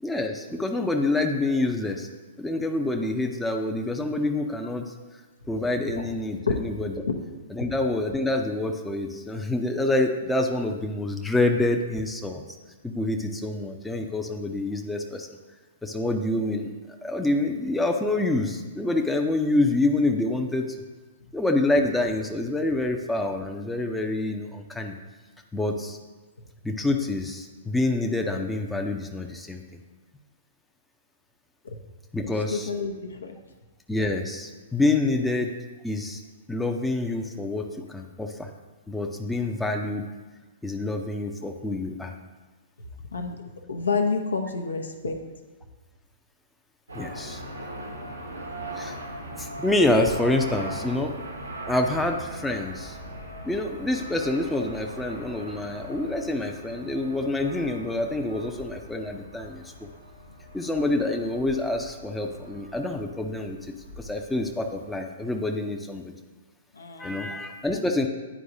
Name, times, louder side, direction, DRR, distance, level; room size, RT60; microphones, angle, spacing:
voice 1, 0.0-2.1 2.4-4.9 5.5-6.9 7.5-12.4 12.8-15.3 15.8-16.7 17.0-20.7 21.3-24.9 25.5-26.0 26.6-29.6 32.1-32.7 33.9-35.5 35.8-36.2 36.5-38.5 38.9-40.0 40.6-42.1 46.9-47.4 48.8-49.0 49.4-53.0 53.4-59.9 60.5-63.6 64.0-66.1 67.0-68.1, left 2 dB, 5° left, 2 dB, 0.5 m, -27 dB
voice 2, 32.5-33.4 43.1-43.4 43.7-45.1 66.7-67.4, left 4 dB, 75° left, 4 dB, 0.7 m, -29 dB
sound 1, 46.9-64.9, right 1 dB, 85° right, 1.2 m, -40 dB
9.8 x 4.6 x 2.7 m, 1.3 s
figure-of-eight pair, 110°, 0 cm